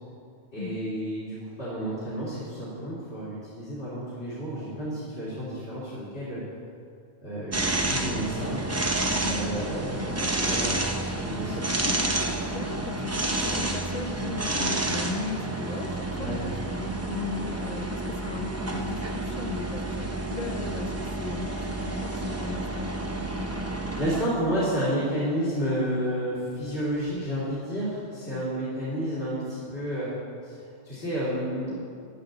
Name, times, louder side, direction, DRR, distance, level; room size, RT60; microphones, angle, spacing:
voice 1, 0.5-6.4 7.2-8.6 9.2-11.6 16.2-16.4 23.1-23.3 23.6-30.1 30.4-31.8, equal, 70° left, -10 dB, 3.2 m, -31 dB
sound 1, 7.5-24.2, right 2 dB, 15° right, 0.6 m, -30 dB
voice 2, 9.2-9.5 11.4-21.6 21.8-23.2 28.3-28.6, left 4 dB, 40° left, 5 dB, 0.9 m, -37 dB
15.0 x 10.0 x 4.0 m, 2.4 s
omnidirectional pair, 1.1 m